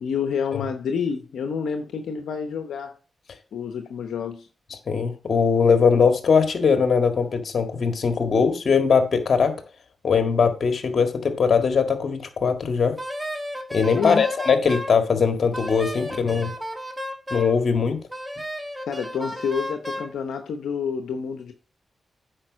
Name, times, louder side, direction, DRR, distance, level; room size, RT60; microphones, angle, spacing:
voice 1, 0.0-3.0 3.5-4.5 14.0-14.3 18.9-21.5, left 6 dB, 85° left, 0.8 m, -28 dB
voice 2, 4.9-9.5 10.0-13.0 13.7-16.5 17.3-18.0, left 5 dB, 60° left, 1.7 m, -20 dB
Wind instrument woodwind instrument, 13.0-15.0 15.5-17.6 18.1-20.1, equal, 10° right, 1.9 m, -33 dB
8.9 x 5.2 x 6.2 m
cardioid pair, 55°, 0 cm